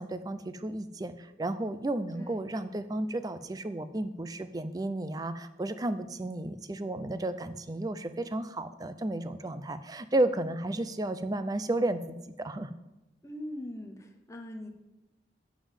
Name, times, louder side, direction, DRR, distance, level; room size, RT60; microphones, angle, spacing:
voice 1, 0.0-12.7, right 1 dB, 20° right, 11 dB, 0.4 m, -33 dB
voice 2, 13.2-14.7, left 1 dB, 15° left, 4 dB, 0.7 m, -41 dB
7.2 x 5.3 x 7.2 m, 0.98 s
head